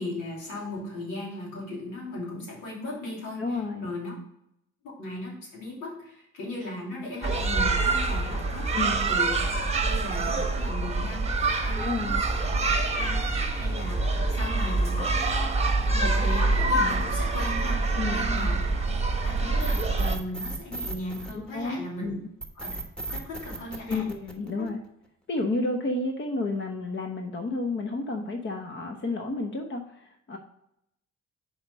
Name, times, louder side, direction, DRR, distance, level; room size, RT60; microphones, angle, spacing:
voice 1, 0.0-3.4 3.8-4.1 4.8-9.4 9.8-12.0 12.4-12.6 13.0-15.6 15.9-18.7 19.2-22.1 22.6-22.8 23.1-24.0 24.6-24.7, left 1 dB, 85° left, -3 dB, 2.9 m, -37 dB
voice 2, 3.4-3.9 8.7-9.1 11.8-12.2 17.9-18.5 21.3-22.3 23.9-24.8 25.3-30.4, left 2 dB, 40° left, 4 dB, 1.0 m, -31 dB
sound 1, 7.2-20.2, right 3 dB, 20° right, 1.0 m, -26 dB
sound 2, 19.6-21.9 22.4-24.8, right 2 dB, 5° left, 1.2 m, -36 dB
5.8 x 4.8 x 5.4 m, 0.79 s
cardioid pair, 90°, 30 cm